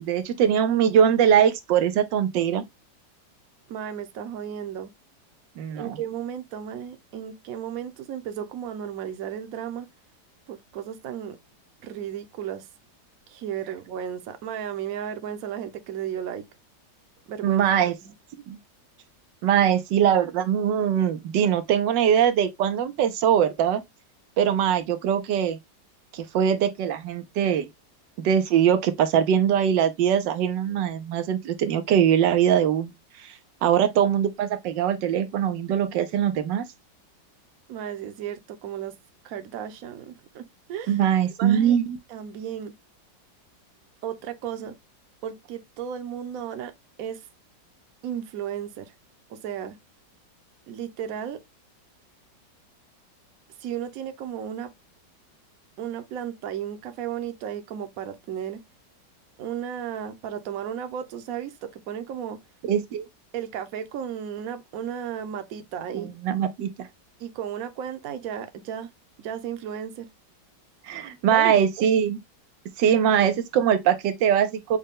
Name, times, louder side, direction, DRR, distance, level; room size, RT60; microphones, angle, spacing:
voice 1, 0.0-2.6 5.6-6.0 17.4-17.9 18.5-18.6 19.4-23.8 24.4-25.6 26.1-27.7 28.2-32.9 33.2-33.3 33.6-36.6 40.9-42.0 62.6-63.0 65.9-66.9 70.8-72.2 72.8-74.8, right 9 dB, 85° right, 1.3 m, -22 dB
voice 2, 3.7-4.9 5.8-9.9 10.5-11.4 11.8-12.7 13.3-16.4 17.3-17.6 18.0-18.1 37.7-39.0 39.2-40.4 40.7-41.0 41.4-41.8 42.1-42.7 44.0-44.7 45.2-46.7 47.0-47.2 48.0-48.9 49.3-49.8 50.7-51.4 53.6-54.7 55.8-58.6 59.4-62.4 63.3-66.1 67.2-68.9 69.2-70.1 71.3-71.9, right 9 dB, 60° right, 1.1 m, -34 dB
6.5 x 2.2 x 3.5 m
omnidirectional pair, 1.9 m